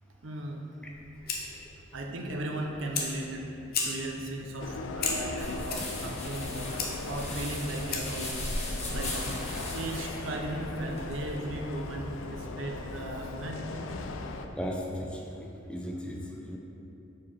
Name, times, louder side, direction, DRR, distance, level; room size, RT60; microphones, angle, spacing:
voice 1, 0.2-0.9 1.9-3.5 3.8-6.8 7.1-8.4 8.9-9.3 9.7-13.7, right 1 dB, 70° right, 1 dB, 0.7 m, -36 dB
Fire, 0.8-8.3, left 4 dB, 50° left, 0.8 m, -37 dB
sound 1, 4.6-14.5, left 3 dB, 70° left, 0.4 m, -38 dB
sound 2, 5.4-12.2, left 1 dB, 35° left, 1.3 m, -38 dB
voice 2, 14.6-15.1 15.4-16.2 16.5-16.6, equal, 5° left, -1 dB, 0.5 m, -36 dB
4.8 x 4.7 x 5.6 m, 2.9 s
head